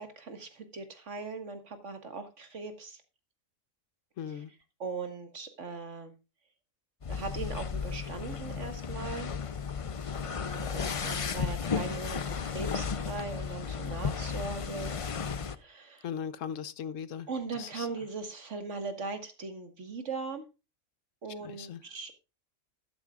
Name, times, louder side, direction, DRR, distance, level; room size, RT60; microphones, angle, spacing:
voice 1, 0.0-3.0 4.3-4.4 4.8-6.1 7.1-9.3 10.3-14.9 15.6-16.1 17.3-20.4 21.2-22.2, right 4 dB, 60° right, 7 dB, 2.0 m, -39 dB
voice 2, 4.2-4.5 16.0-17.3 17.6-17.9 21.4-21.8, left 8 dB, 70° left, 15 dB, 1.1 m, -38 dB
sound 1, 7.0-15.6, left 6 dB, 45° left, 0.4 m, -34 dB
13.0 x 12.5 x 2.4 m, 0.28 s
omnidirectional pair, 1.4 m